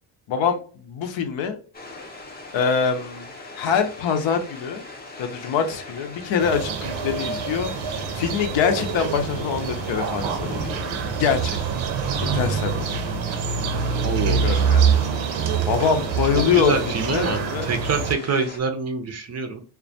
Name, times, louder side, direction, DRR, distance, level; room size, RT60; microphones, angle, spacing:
voice 1, 0.3-1.6 2.5-3.3 3.5-4.9 5.2-7.7 8.1-10.6 11.1-11.8 12.2-13.0 14.3-14.9 15.7-17.7, left 6 dB, 70° left, 6 dB, 0.7 m, -24 dB
sound 1, 1.7-18.6, left 2 dB, 20° left, 0.6 m, -39 dB
sound 2, 6.4-18.1, right 6 dB, 80° right, 0.6 m, -25 dB
voice 2, 14.0-14.5 16.5-19.6, right 5 dB, 35° right, 6 dB, 0.5 m, -26 dB
2.2 x 2.2 x 2.6 m, 0.40 s
cardioid pair, 100°, 47 cm